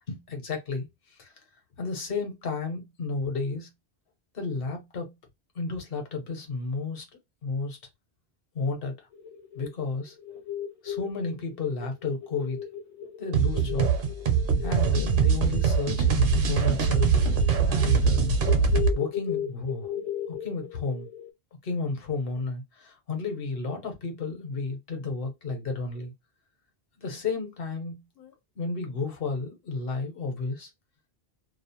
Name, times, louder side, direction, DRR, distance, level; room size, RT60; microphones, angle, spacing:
voice 1, 0.1-1.3 1.8-3.7 4.3-5.1 5.5-7.0 7.4-7.8 8.5-9.1 9.5-10.2 10.8-12.6 13.2-13.9 14.6-17.2 17.7-18.3 18.9-21.1 21.6-26.1 27.0-30.7, left 4 dB, 65° left, 1.1 m, -32 dB
sound 1, 9.1-21.3, left 9 dB, 50° left, 0.5 m, -37 dB
sound 2, 13.3-18.9, right 5 dB, 60° right, 0.7 m, -23 dB
2.4 x 2.0 x 2.8 m
omnidirectional pair, 1.0 m